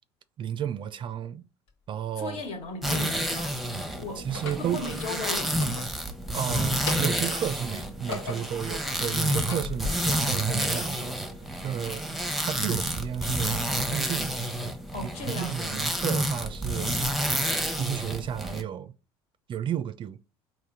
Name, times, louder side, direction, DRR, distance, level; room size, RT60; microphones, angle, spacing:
voice 1, 0.4-1.4 1.9-2.4 4.2-4.9 6.3-11.2 11.6-14.8 15.0-17.0 17.8-18.9 19.5-20.2, right 9 dB, 40° right, 0.4 m, -33 dB
sound 1, 1.7-1.8 2.6-3.4 4.2-4.7 5.4-6.4 6.7-7.3 7.8-8.6 9.1-9.9, left 4 dB, 75° left, 1.7 m, -37 dB
voice 2, 2.2-4.3 4.6-5.6 14.9-16.2, left 3 dB, 55° left, 1.5 m, -37 dB
sound 2, 2.8-18.6, right 1 dB, ahead, 0.8 m, -29 dB
4.2 x 2.9 x 3.7 m
hypercardioid pair, 70°, 13 cm